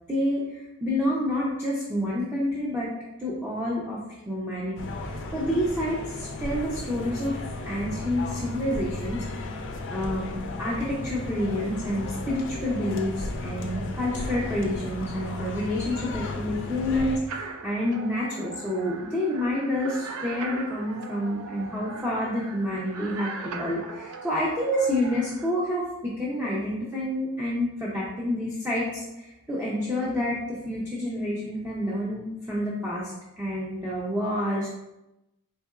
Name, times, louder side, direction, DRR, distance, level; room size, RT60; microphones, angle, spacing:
voice 1, 0.1-2.9 3.2-4.0 4.3-4.7 5.0-9.2 9.9-34.7, left 1 dB, 10° right, -6 dB, 0.5 m, -28 dB
sound 1, 4.8-17.2, left 2 dB, 60° left, 0.5 m, -34 dB
sound 2, 17.3-25.5, right 4 dB, 80° right, 0.4 m, -40 dB
4.1 x 3.6 x 2.4 m, 0.93 s
head